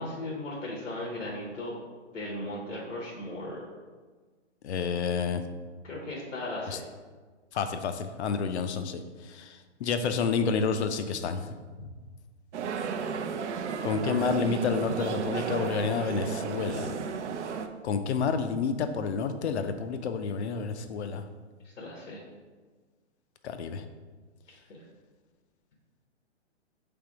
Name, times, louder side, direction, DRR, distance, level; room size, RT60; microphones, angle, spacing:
voice 1, 0.0-1.8 2.1-3.6 5.8-6.8 21.8-22.2 24.7-24.8, left 1 dB, 85° left, -3 dB, 1.2 m, -37 dB
voice 2, 4.6-5.4 6.7-6.8 7.5-11.5 13.8-17.0 17.8-21.2 23.4-23.8, left 5 dB, 65° left, 8 dB, 0.5 m, -29 dB
sound 1, 12.5-17.7, right 6 dB, 70° right, 0.5 m, -33 dB
3.5 x 3.3 x 4.6 m, 1.4 s
hypercardioid pair, 140°, 36 cm